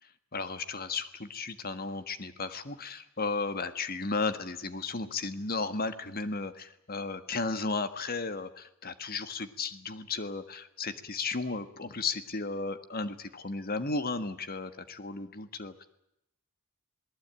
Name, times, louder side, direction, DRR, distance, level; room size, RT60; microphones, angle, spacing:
voice 1, 0.3-15.8, left 3 dB, 45° left, 11 dB, 1.6 m, -34 dB
28.0 x 19.0 x 9.0 m, 0.83 s
head